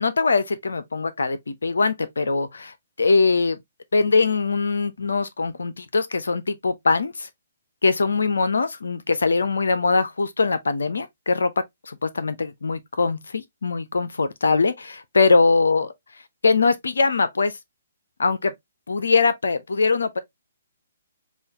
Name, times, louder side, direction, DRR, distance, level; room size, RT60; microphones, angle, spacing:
voice 1, 0.0-3.6 3.9-7.3 7.8-11.5 11.9-15.9 16.4-17.5 18.2-18.5 18.9-20.2, left 4 dB, 75° left, 0.6 m, -22 dB
5.5 x 2.4 x 2.8 m
figure-of-eight pair, 130°, 0 cm